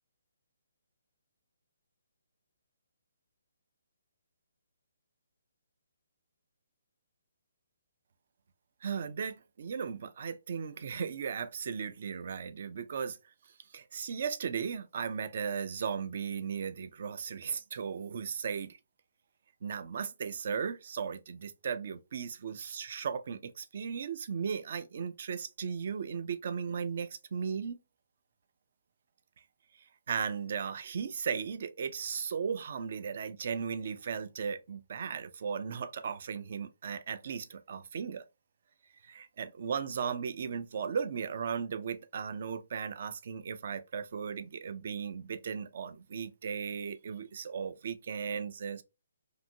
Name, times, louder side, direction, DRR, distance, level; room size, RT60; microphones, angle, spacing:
voice 1, 8.8-13.2 13.7-18.8 19.6-27.8 30.1-38.2 39.0-48.8, right 6 dB, 45° right, 0.4 m, -36 dB
2.7 x 2.5 x 2.6 m
figure-of-eight pair, 135°, 0 cm